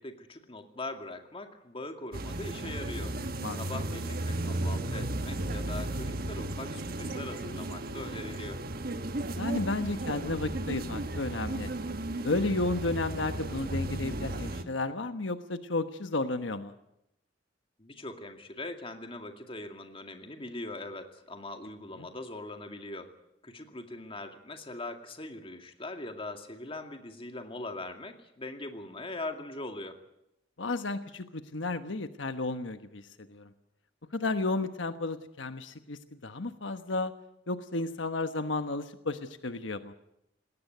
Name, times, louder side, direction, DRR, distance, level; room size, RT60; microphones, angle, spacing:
voice 1, 0.0-3.2 3.6-8.6 17.8-23.1 23.4-30.0, left 2 dB, 30° left, 5 dB, 2.3 m, -41 dB
sound 1, 2.1-14.6, right 1 dB, 55° right, 1.4 m, -34 dB
voice 2, 9.4-11.7 12.2-16.7 22.0-22.1 30.6-33.0 33.3-33.5 34.1-37.1 37.5-39.9, left 2 dB, 85° left, 9 dB, 1.2 m, -32 dB
20.0 x 18.0 x 9.4 m, 0.83 s
head